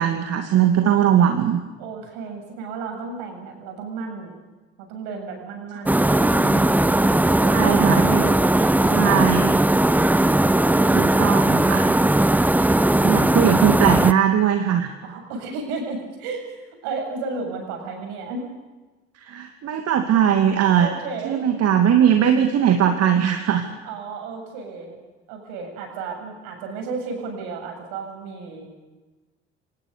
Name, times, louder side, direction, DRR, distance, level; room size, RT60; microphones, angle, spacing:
voice 1, 0.0-1.6 7.5-8.3 8.9-9.6 10.9-12.0 13.0-14.9 19.2-20.9 21.2-23.6, right 9 dB, 50° right, 6 dB, 2.5 m, -20 dB
voice 2, 1.8-4.3 4.8-9.9 10.3-11.7 15.0-18.5 20.7-21.5 23.8-25.0 25.3-28.7, right 4 dB, 65° right, 3 dB, 7.6 m, -33 dB
sound 1, 5.9-14.1, right 1 dB, 5° right, 1.0 m, -18 dB
28.0 x 26.0 x 6.9 m, 1.2 s
figure-of-eight pair, 50°, 32 cm